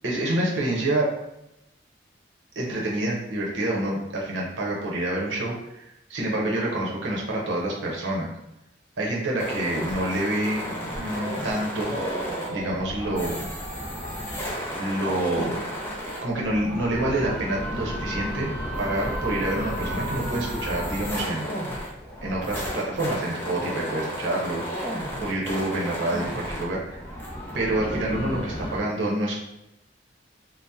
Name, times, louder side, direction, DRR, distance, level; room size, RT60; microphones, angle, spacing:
voice 1, 0.0-1.1 2.6-5.8 6.1-8.3 9.0-12.0 12.5-13.5 14.8-15.6 16.2-18.5 18.8-21.6 22.2-27.0 27.5-29.4, right 1 dB, 85° right, -3 dB, 0.7 m, -27 dB
sound 1, 9.4-28.8, equal, 10° left, 0.4 m, -32 dB
2.7 x 2.0 x 3.4 m, 0.88 s
head